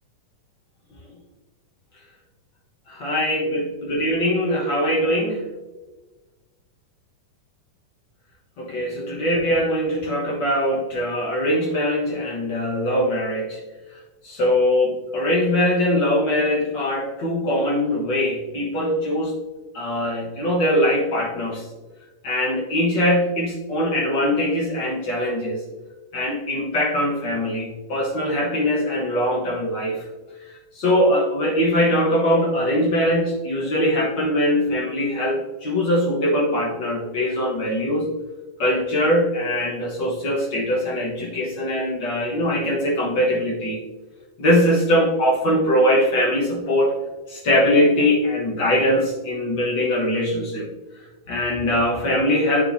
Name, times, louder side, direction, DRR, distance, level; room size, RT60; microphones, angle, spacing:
voice 1, 2.9-5.4 8.6-13.6 14.2-19.3 19.7-21.6 22.2-25.6 26.1-30.0 30.7-38.1 38.6-43.8 44.4-46.9 47.3-50.7 51.3-52.6, left 1 dB, 55° left, -3 dB, 1.3 m, -22 dB
9.7 x 5.9 x 2.7 m, 1.2 s
omnidirectional pair, 3.8 m